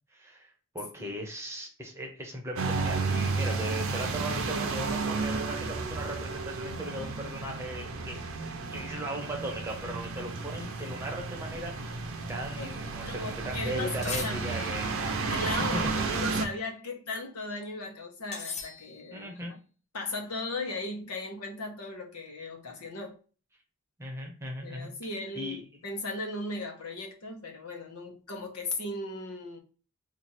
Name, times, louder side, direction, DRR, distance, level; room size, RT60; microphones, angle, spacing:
voice 1, 0.1-8.2 8.7-12.0 12.3-15.3 15.6-15.9 19.1-19.6 24.0-24.9 25.3-25.8, right 1 dB, 10° right, 0.8 m, -38 dB
sound 1, 2.6-16.4, right 3 dB, 60° right, 0.6 m, -32 dB
voice 2, 13.1-14.5 15.2-19.3 19.9-23.1 24.6-29.6, left 2 dB, 85° left, 1.0 m, -37 dB
sound 2, 14.0-14.9 18.3-19.3, left 5 dB, 30° left, 0.6 m, -39 dB
3.0 x 2.5 x 4.0 m
head